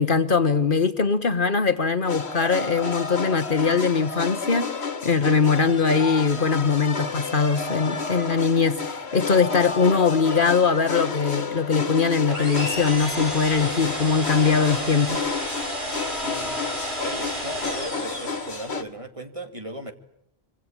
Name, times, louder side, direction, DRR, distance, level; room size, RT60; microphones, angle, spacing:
voice 1, 0.0-15.2, left 5 dB, 55° left, 11 dB, 1.4 m, -21 dB
sound 1, 2.1-18.8, left 4 dB, 80° left, 1.9 m, -30 dB
sound 2, 12.3-18.8, right 1 dB, 50° right, 6.1 m, -32 dB
voice 2, 16.1-16.6 17.0-19.9, right 1 dB, 30° right, 6 dB, 2.3 m, -37 dB
25.5 x 24.5 x 8.8 m, 0.73 s
omnidirectional pair, 1.1 m